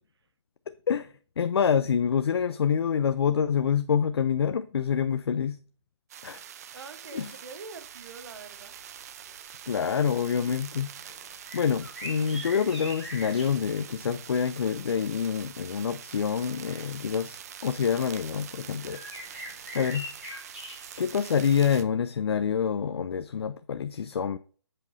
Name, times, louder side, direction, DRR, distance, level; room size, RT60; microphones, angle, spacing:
voice 1, 0.7-5.6 6.2-6.4 7.1-7.3 9.7-11.3 11.5-19.0 19.3-19.4 19.7-20.1 21.0-24.4, left 7 dB, 60° left, 0.5 m, -27 dB
sound 1, 6.1-21.8, right 9 dB, 35° right, 0.6 m, -45 dB
voice 2, 6.7-8.7, right 4 dB, 65° right, 1.0 m, -44 dB
sound 2, 8.2-8.3 8.7-8.8 9.3-9.9 10.3-10.5 11.2-13.6 15.7-15.8 16.8-16.9 17.5-18.1 18.9-21.1, left 1 dB, 5° right, 3.1 m, -42 dB
7.9 x 7.7 x 2.6 m
hypercardioid pair, 150°, 15 cm